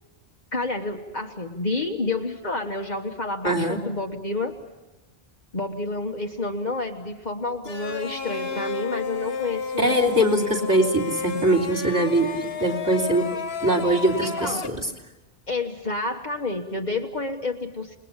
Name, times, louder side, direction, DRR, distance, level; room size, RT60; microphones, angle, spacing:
voice 1, 0.5-4.5 5.5-10.0 14.2-14.7 15.5-18.0, left 2 dB, 45° left, 2 dB, 1.4 m, -29 dB
voice 2, 3.4-3.8 9.8-13.3 13.6-14.8, right 1 dB, 20° right, 1 dB, 3.3 m, -22 dB
sound 1, 7.6-14.7, left 5 dB, 70° left, 1.5 m, -32 dB
29.0 x 20.5 x 7.3 m, 1.1 s
omnidirectional pair, 1.1 m